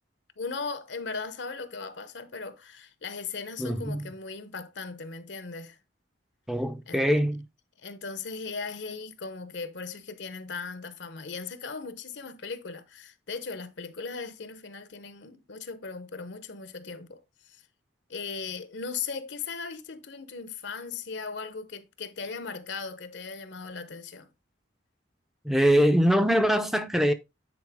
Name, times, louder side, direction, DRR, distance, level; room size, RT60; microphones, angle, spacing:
voice 1, 0.4-5.8 6.9-7.0 7.8-17.2 17.5-17.6 18.1-24.3, left 4 dB, 65° left, 0.9 m, -38 dB
voice 2, 3.6-4.1 6.5-7.5 25.4-27.1, equal, ahead, 0.6 m, -23 dB
9.4 x 4.4 x 3.5 m
head